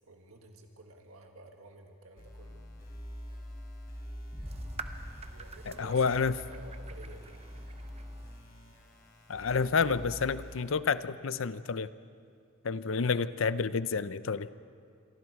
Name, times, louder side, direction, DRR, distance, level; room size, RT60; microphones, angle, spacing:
voice 1, 0.1-2.6 5.3-7.5, right 2 dB, 80° right, 3 dB, 1.7 m, -52 dB
sound 1, 2.2-10.6, equal, 45° left, 3.9 m, -46 dB
Boom, 4.3-7.3, equal, 5° right, 2.3 m, -46 dB
sound 2, 4.5-8.5, right 5 dB, 30° right, 0.8 m, -48 dB
voice 2, 5.7-6.4 9.3-11.9 12.6-14.5, left 5 dB, 65° left, 15 dB, 0.6 m, -29 dB
27.5 x 23.5 x 4.7 m, 2.3 s
head